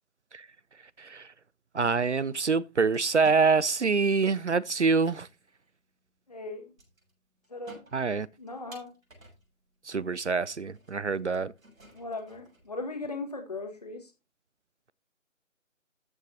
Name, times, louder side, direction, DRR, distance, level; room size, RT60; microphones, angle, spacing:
voice 1, 1.0-1.3 1.7-5.3 7.9-8.3 9.8-11.5, right 4 dB, 60° right, 0.5 m, -26 dB
sound 1, 2.9-3.8 4.6-4.7 4.9-5.7 6.8-7.1 7.4-9.6 10.0-10.1 10.7-13.0, right 1 dB, 80° right, 7.4 m, -54 dB
voice 2, 6.3-6.7 7.5-7.8 8.4-8.9 11.9-14.1, left 3 dB, 30° left, 1.8 m, -38 dB
14.0 x 8.1 x 2.8 m
figure-of-eight pair, 175°, 41 cm